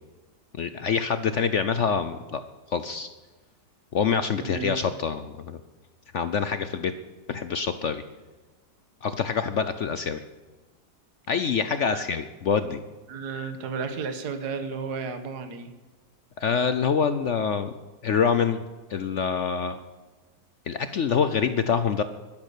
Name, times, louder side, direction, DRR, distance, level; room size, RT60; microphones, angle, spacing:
voice 1, 0.6-2.4 2.7-3.1 3.9-5.6 6.1-6.9 7.3-8.0 9.0-10.2 11.3-12.8 16.4-17.7 18.0-18.6 18.9-19.8 20.7-22.0, left 6 dB, 60° left, 11 dB, 0.7 m, -25 dB
voice 2, 4.4-4.8 11.9-12.0 13.1-15.8, right 5 dB, 60° right, 8 dB, 1.8 m, -33 dB
12.0 x 12.0 x 8.3 m, 1.2 s
omnidirectional pair, 2.0 m